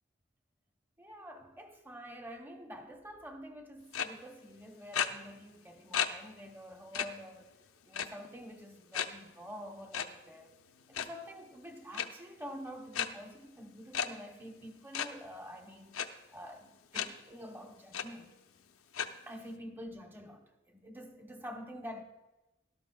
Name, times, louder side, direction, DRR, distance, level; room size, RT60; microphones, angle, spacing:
voice 1, 1.0-7.6 7.8-10.6 10.9-16.0 16.3-18.3 19.3-22.0, equal, 10° right, 0.8 m, -47 dB
sound 1, 3.9-4.1 4.9-5.1 5.9-6.1 6.5-6.6 6.9-7.1 7.9-8.3 8.9-9.1 9.9-10.0 10.8-11.1 11.9-12.1 12.9-13.1 13.9-14.1 14.9-15.1 15.9-16.1 16.9-17.1 17.5-17.6 17.9-18.0 18.9-19.1, left 8 dB, 85° left, 0.6 m, -32 dB
17.5 x 12.0 x 2.3 m
head